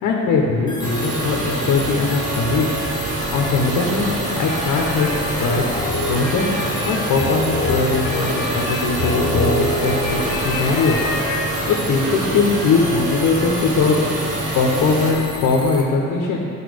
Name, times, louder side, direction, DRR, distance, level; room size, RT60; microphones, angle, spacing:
voice 1, 0.0-2.7 3.3-4.1 4.4-5.1 5.3-5.6 6.1-6.4 6.8-11.0 11.6-14.0 14.5-16.5, left 4 dB, 85° left, -1 dB, 1.0 m, -20 dB
sound 1, 0.7-15.9, left 2 dB, 15° left, 1.1 m, -33 dB
sound 2, 0.8-15.1, right 2 dB, 85° right, 1.6 m, -26 dB
sound 3, 4.2-12.1, left 2 dB, 35° left, 1.8 m, -26 dB
10.0 x 4.4 x 5.1 m, 2.6 s
cardioid pair, 90°, 30 cm